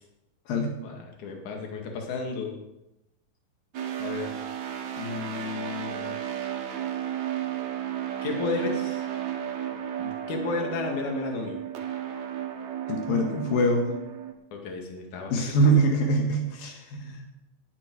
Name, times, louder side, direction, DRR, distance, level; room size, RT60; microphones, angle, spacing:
voice 1, 0.8-2.5 4.0-4.3 5.0-6.1 8.2-9.0 10.0-11.6 14.5-15.5, left 4 dB, 60° left, 2 dB, 3.4 m, -33 dB
sound 1, 3.7-14.3, right 10 dB, 65° right, 2.4 m, -33 dB
voice 2, 12.9-13.9 15.3-17.3, right 1 dB, 80° left, 2 dB, 3.3 m, -24 dB
18.0 x 10.5 x 4.7 m, 0.92 s
omnidirectional pair, 4.1 m